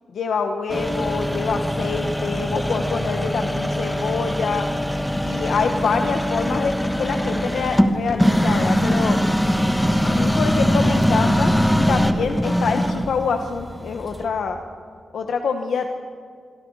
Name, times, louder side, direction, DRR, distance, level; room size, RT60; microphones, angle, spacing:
voice 1, 0.1-4.7 5.2-9.2 10.0-14.6 15.1-15.9, left 5 dB, 85° left, 5 dB, 1.3 m, -25 dB
sound 1, 0.7-14.3, equal, 5° left, 1.3 m, -22 dB
26.5 x 26.0 x 4.9 m, 2.1 s
wide cardioid pair, 140°, 0 cm